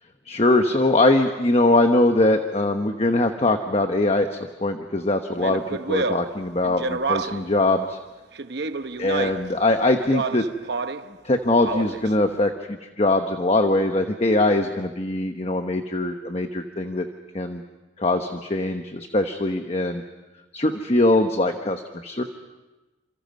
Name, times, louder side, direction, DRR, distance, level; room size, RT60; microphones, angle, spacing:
voice 1, 0.3-8.0 9.0-10.5 11.2-17.1 17.3-17.6 18.0-20.0 20.5-22.2, left 2 dB, 35° left, 6 dB, 1.1 m, -22 dB
Speech, 5.4-7.5 8.4-9.5 10.0-11.1 11.5-12.1, right 3 dB, 60° right, 0.8 m, -28 dB
29.5 x 27.0 x 5.4 m, 1.1 s
head